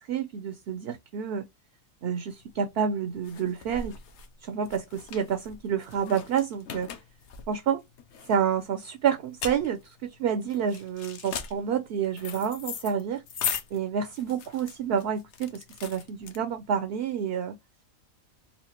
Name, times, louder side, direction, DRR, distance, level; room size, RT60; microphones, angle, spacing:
voice 1, 0.0-1.5 2.0-4.0 4.4-6.9 7.5-7.8 8.3-13.2 13.7-17.6, right 8 dB, 65° right, 0.6 m, -29 dB
sound 1, 2.4-16.8, left 7 dB, 65° left, 0.9 m, -39 dB
4.2 x 2.4 x 2.8 m
omnidirectional pair, 1.4 m